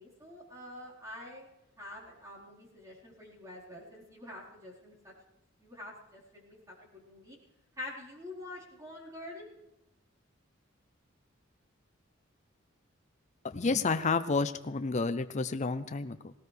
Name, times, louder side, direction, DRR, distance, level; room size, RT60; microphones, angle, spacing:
voice 1, 0.0-1.5 1.8-5.1 5.6-7.4 7.8-9.4, left 1 dB, 15° right, -6 dB, 4.3 m, -46 dB
voice 2, 13.4-16.3, left 4 dB, 35° left, 10 dB, 0.5 m, -30 dB
18.5 x 18.0 x 3.4 m, 0.90 s
head